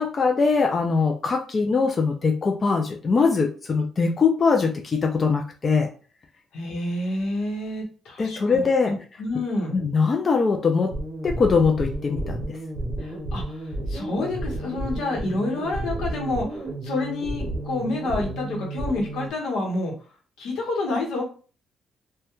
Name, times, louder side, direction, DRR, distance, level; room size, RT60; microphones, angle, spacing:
voice 1, 0.0-5.9 8.2-8.9 9.7-10.9 11.2-12.6, left 4 dB, 40° left, 3 dB, 0.3 m, -22 dB
voice 2, 6.5-9.7 13.0-19.9 20.4-21.2, left 2 dB, 85° left, 0 dB, 0.9 m, -29 dB
sound 1, 10.9-19.3, right 1 dB, 35° right, 0.7 m, -31 dB
2.2 x 2.1 x 2.9 m, 0.38 s
cardioid pair, 90°, 0 cm